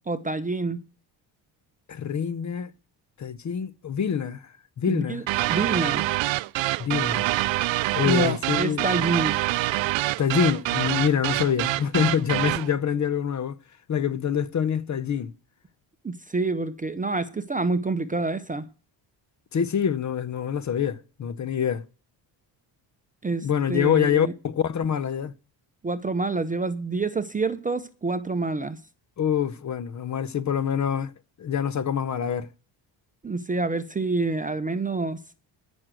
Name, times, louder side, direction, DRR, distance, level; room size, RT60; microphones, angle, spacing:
voice 1, 0.1-0.8 4.9-5.2 5.5-6.1 8.0-9.4 16.0-18.7 23.2-24.3 25.8-28.8 33.2-35.2, right 3 dB, 20° right, 0.6 m, -27 dB
voice 2, 1.9-2.7 3.2-4.5 4.8-5.2 6.8-7.3 7.9-8.8 10.2-13.6 13.9-15.3 19.5-21.8 23.4-25.3 29.2-31.1 31.4-32.5, left 8 dB, 40° left, 0.7 m, -25 dB
sound 1, 5.3-12.7, right 18 dB, 75° right, 0.5 m, -26 dB
14.0 x 6.3 x 6.2 m
cardioid pair, 125°, 46 cm